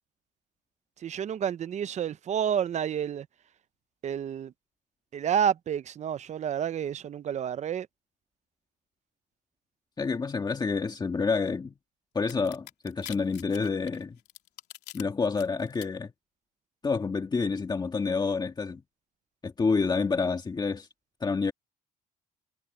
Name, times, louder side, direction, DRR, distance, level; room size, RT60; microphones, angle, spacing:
voice 1, 1.0-3.3 4.0-4.5 5.1-7.9, right 9 dB, 45° right, 0.7 m, -29 dB
voice 2, 10.0-11.7 12.2-14.2 14.9-16.1 16.8-18.8 19.4-20.9 21.2-21.5, left 4 dB, 25° left, 1.7 m, -28 dB
sound 1, 12.3-15.0 15.4-15.9, left 15 dB, 80° left, 2.8 m, -44 dB
cardioid pair, 110°, 17 cm